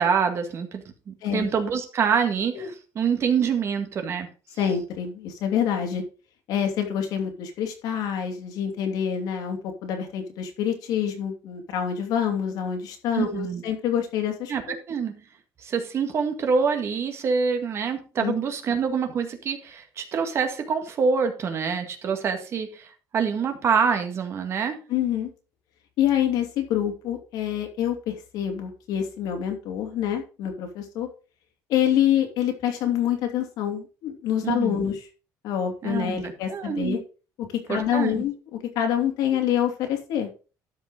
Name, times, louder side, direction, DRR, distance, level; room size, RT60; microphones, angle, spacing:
voice 1, 0.0-4.3 13.1-13.6 14.5-14.6 14.9-15.2 15.6-24.8 34.4-34.9 35.8-37.0 37.7-38.2, right 6 dB, 45° right, 6 dB, 1.9 m, -26 dB
voice 2, 4.6-6.0 6.5-14.8 18.2-18.3 24.9-25.3 26.0-31.1 31.7-34.9 35.4-37.0 37.4-40.3, left 9 dB, 80° left, 4 dB, 2.9 m, -26 dB
12.5 x 5.4 x 5.1 m, 0.35 s
cardioid pair, 140°, 7 cm